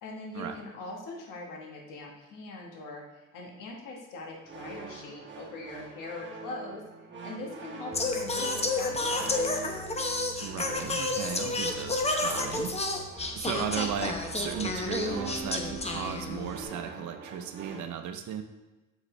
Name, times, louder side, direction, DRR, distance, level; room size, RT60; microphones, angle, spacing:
voice 1, 0.0-3.0 3.3-6.8 7.2-9.6, left 2 dB, 85° left, 0 dB, 1.4 m, -41 dB
sound 1, 4.4-17.8, right 4 dB, 35° right, 1.3 m, -43 dB
Singing, 7.9-16.6, left 2 dB, 20° left, 0.8 m, -31 dB
voice 2, 10.4-12.7 13.3-18.4, right 8 dB, 65° right, 7 dB, 0.7 m, -35 dB
7.1 x 4.9 x 3.2 m, 1.1 s
cardioid pair, 90°, 31 cm